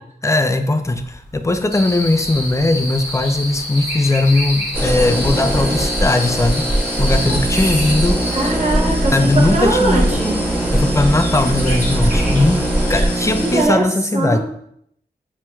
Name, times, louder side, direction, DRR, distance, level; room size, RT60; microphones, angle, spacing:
voice 1, 0.2-6.7 7.0-8.2 9.1-10.1 10.7-12.6 12.9-14.4, left 2 dB, 20° left, 8 dB, 0.3 m, -18 dB
sound 1, 0.8-13.7, left 1 dB, 45° left, 1.3 m, -35 dB
sound 2, 1.7-8.5, left 1 dB, 80° left, 1.7 m, -29 dB
sound 3, 4.7-13.6, right 1 dB, 10° right, 1.3 m, -20 dB
voice 2, 8.3-10.4 12.9-13.1 13.4-13.8 14.1-14.4, right 2 dB, 45° right, -2 dB, 0.7 m, -21 dB
6.0 x 2.9 x 2.2 m, 0.70 s
wide cardioid pair, 85°, 17 cm